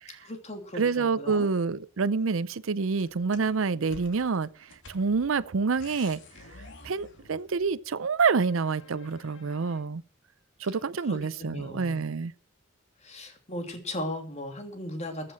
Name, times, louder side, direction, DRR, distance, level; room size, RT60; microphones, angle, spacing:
voice 1, 0.2-1.5 11.1-12.0 13.0-15.3, left 1 dB, 35° left, 2.8 m, -37 dB
voice 2, 0.7-4.5 4.9-6.2 6.8-10.0 10.6-12.3, right 5 dB, 75° right, 0.6 m, -27 dB
sound 1, 3.0-7.8 8.3-9.8, left 3 dB, 65° left, 2.5 m, -51 dB
14.5 x 7.6 x 6.2 m
head